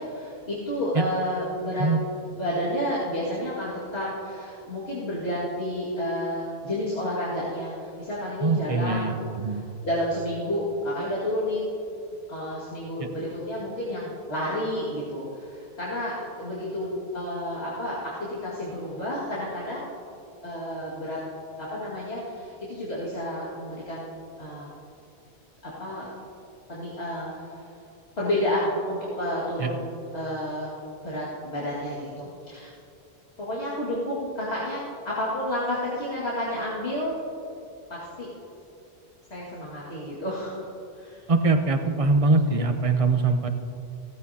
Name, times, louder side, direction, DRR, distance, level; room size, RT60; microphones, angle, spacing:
voice 1, 0.0-1.9 2.4-9.1 9.5-11.7 12.3-19.9 20.4-21.2 21.6-24.7 25.6-26.1 26.7-27.6 28.2-30.7 31.0-32.7 33.4-37.1 37.9-38.3 39.3-40.7 41.0-41.2, left 1 dB, 75° left, -9 dB, 2.4 m, -30 dB
voice 2, 8.4-9.6 13.0-13.1 29.6-29.7 41.3-43.5, right 3 dB, 35° right, 7 dB, 0.8 m, -23 dB
17.0 x 14.5 x 2.8 m, 2.6 s
omnidirectional pair, 1.1 m